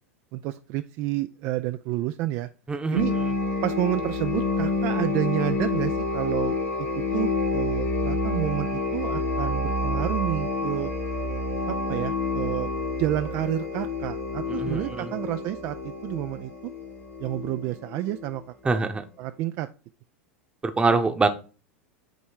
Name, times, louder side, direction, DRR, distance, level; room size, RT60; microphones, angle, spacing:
voice 1, 0.3-2.5 2.9-3.1 3.6-10.9 11.7-12.7 13.0-16.5 17.2-18.9 19.2-19.7, right 15 dB, 45° right, 10 dB, 0.4 m, -30 dB
voice 2, 2.7-3.0 14.5-15.1 18.6-19.0 20.6-21.3, right 3 dB, 15° right, 8 dB, 0.9 m, -24 dB
sound 1, 2.9-18.4, left 3 dB, 70° left, 2.5 m, -28 dB
9.0 x 3.1 x 4.6 m, 0.35 s
figure-of-eight pair, 90°, 7 cm